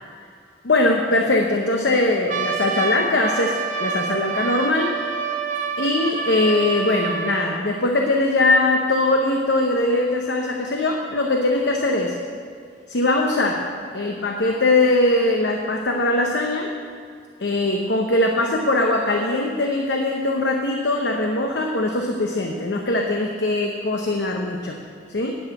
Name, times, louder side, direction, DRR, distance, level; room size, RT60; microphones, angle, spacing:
voice 1, 0.6-4.9 5.8-12.2 12.9-13.7 13.9-16.7 17.4-24.8 25.1-25.4, left 2 dB, 70° left, 2 dB, 0.8 m, -21 dB
Trumpet, 2.3-7.6, right 5 dB, 45° right, 0.8 m, -27 dB
11.0 x 5.8 x 8.2 m, 2.2 s
head